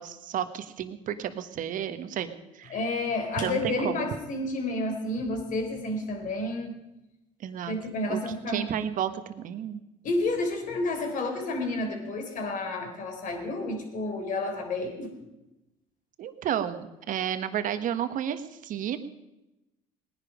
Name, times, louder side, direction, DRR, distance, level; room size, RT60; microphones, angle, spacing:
voice 1, 0.0-2.8 3.4-4.1 7.4-7.8 8.1-9.8 16.2-19.0, right 9 dB, 55° right, 11 dB, 1.3 m, -32 dB
voice 2, 2.7-6.7 7.7-8.7 10.0-15.1, left 2 dB, 55° left, 3 dB, 3.7 m, -30 dB
19.0 x 10.5 x 5.0 m, 0.94 s
supercardioid pair, 80°, 16 cm